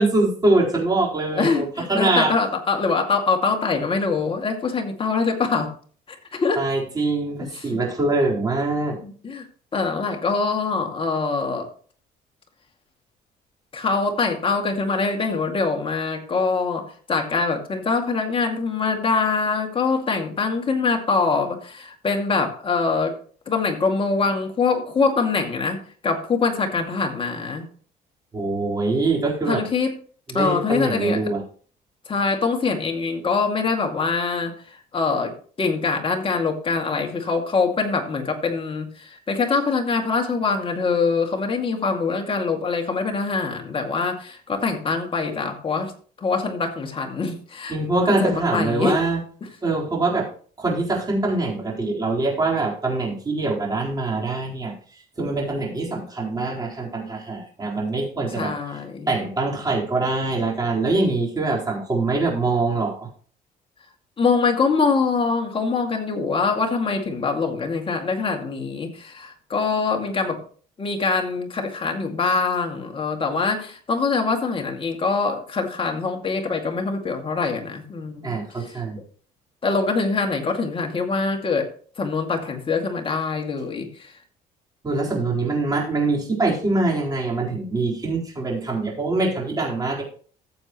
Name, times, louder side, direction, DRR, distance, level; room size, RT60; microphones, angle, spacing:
voice 1, 0.0-2.3 6.6-9.0 28.3-29.6 30.3-31.4 47.7-49.2 49.6-50.3 50.6-54.7 55.2-58.5 59.1-63.1 78.2-79.0 84.8-90.0, right 2 dB, 25° right, -3 dB, 4.1 m, -23 dB
voice 2, 1.3-5.7 6.1-6.6 7.4-7.8 9.0-9.5 9.7-11.7 13.7-23.1 23.5-27.7 29.5-29.9 30.3-31.2 32.1-35.3 35.6-45.9 46.2-47.8 48.2-49.0 58.4-59.1 64.2-70.4 70.8-79.0 79.6-81.7 82.0-84.1, left 4 dB, 30° left, 3 dB, 2.3 m, -24 dB
14.0 x 7.8 x 3.1 m, 0.43 s
cardioid pair, 110°, 17 cm